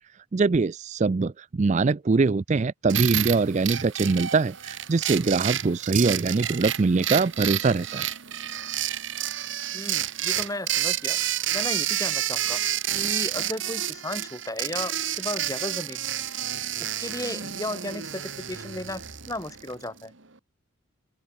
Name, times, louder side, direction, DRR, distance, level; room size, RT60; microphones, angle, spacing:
voice 1, 0.3-8.1, right 4 dB, 35° right, 0.4 m, -23 dB
sound 1, 2.9-19.9, right 12 dB, 60° right, 2.1 m, -30 dB
voice 2, 9.7-11.2 11.5-12.6 12.9-16.1 16.8-20.1, left 1 dB, 15° left, 6.8 m, -34 dB
open air
head